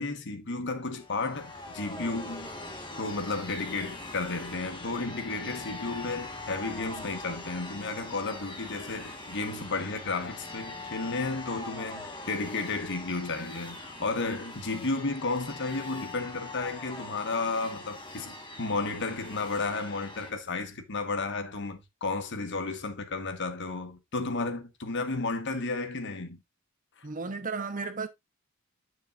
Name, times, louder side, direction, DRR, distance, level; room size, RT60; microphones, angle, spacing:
voice 1, 0.0-2.5 2.9-26.4, left 3 dB, 60° left, 1.4 m, -33 dB
sound 1, 0.9-20.3, left 2 dB, 25° left, 1.5 m, -42 dB
voice 2, 27.0-28.1, right 4 dB, 40° right, 0.9 m, -34 dB
10.0 x 6.4 x 2.5 m
head